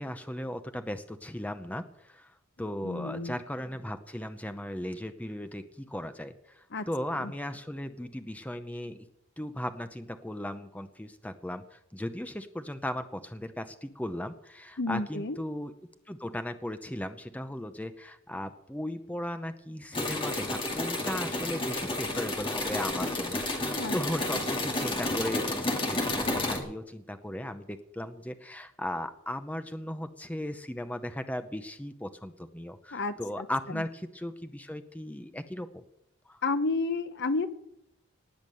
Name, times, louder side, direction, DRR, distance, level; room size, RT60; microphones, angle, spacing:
voice 1, 0.0-2.3 2.6-9.1 9.4-15.7 16.1-35.8 36.3-36.4, left 1 dB, 5° left, 9 dB, 0.7 m, -37 dB
voice 2, 2.8-3.3 6.7-6.9 7.2-7.3 14.8-15.4 23.8-24.0 24.2-24.3 32.9-33.5 33.7-33.8 36.4-37.5, left 3 dB, 55° left, 11 dB, 0.9 m, -31 dB
sound 1, 19.9-26.6, left 2 dB, 25° left, 2.4 m, -31 dB
19.0 x 7.2 x 7.8 m, 0.81 s
head